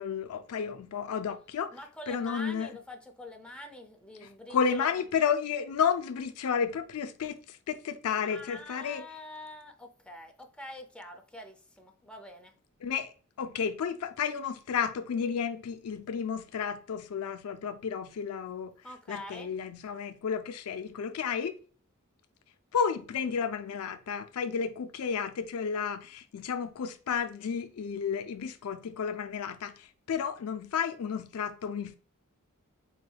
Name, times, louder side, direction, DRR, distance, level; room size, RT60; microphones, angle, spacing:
voice 1, 0.0-1.8 2.1-2.7 4.5-9.0 12.8-18.7 19.1-21.5 22.7-31.9, left 7 dB, 75° left, 0.4 m, -32 dB
voice 2, 1.7-5.1 8.2-12.5 18.8-19.5, left 1 dB, 5° left, 0.5 m, -45 dB
4.4 x 3.3 x 2.2 m
head